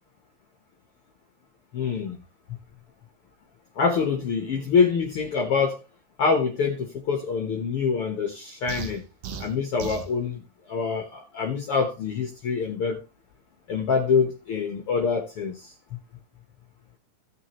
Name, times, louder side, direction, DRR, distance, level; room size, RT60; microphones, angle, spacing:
voice 1, 1.7-2.2 2.5-2.6 3.8-5.8 6.2-9.0 9.4-13.0 13.7-15.7, left 5 dB, 55° left, 1.8 m, -25 dB
sound 1, 8.7-10.1, right 6 dB, 90° right, 2.9 m, -36 dB
16.0 x 6.6 x 3.1 m
omnidirectional pair, 3.7 m